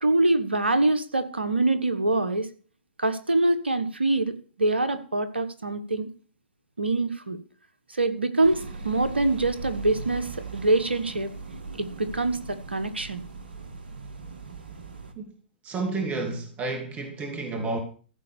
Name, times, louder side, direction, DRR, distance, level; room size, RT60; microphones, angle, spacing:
voice 1, 0.0-2.5 3.0-6.1 6.8-7.4 7.9-11.3 11.7-13.2, right 2 dB, 85° right, 1.3 m, -24 dB
sound 1, 8.4-15.1, right 3 dB, 70° right, 1.9 m, -39 dB
voice 2, 15.6-17.8, right 3 dB, 20° right, 2.5 m, -30 dB
14.5 x 5.3 x 6.9 m
figure-of-eight pair, 115°, 6 cm